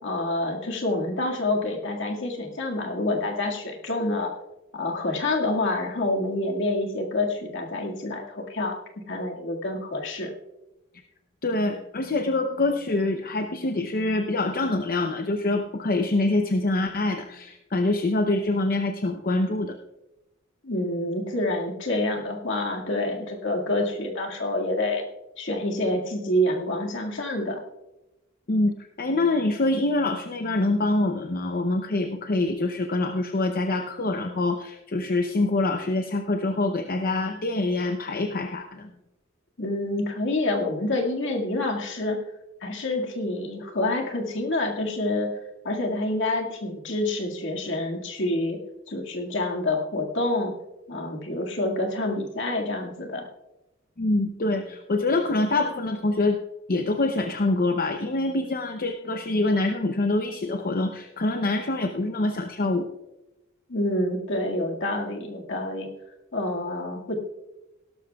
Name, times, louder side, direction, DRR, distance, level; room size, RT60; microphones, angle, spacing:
voice 1, 0.0-4.3 4.7-8.7 9.1-10.3 20.6-25.0 25.4-27.6 39.6-42.2 42.6-45.3 45.6-48.6 48.9-50.5 50.9-53.3 63.7-65.9 66.3-67.1, left 1 dB, 65° left, 1 dB, 2.0 m, -27 dB
voice 2, 11.4-19.8 28.5-38.9 54.0-56.4 56.7-62.9, left 2 dB, 45° left, 5 dB, 0.7 m, -25 dB
17.5 x 12.5 x 2.3 m, 0.97 s
head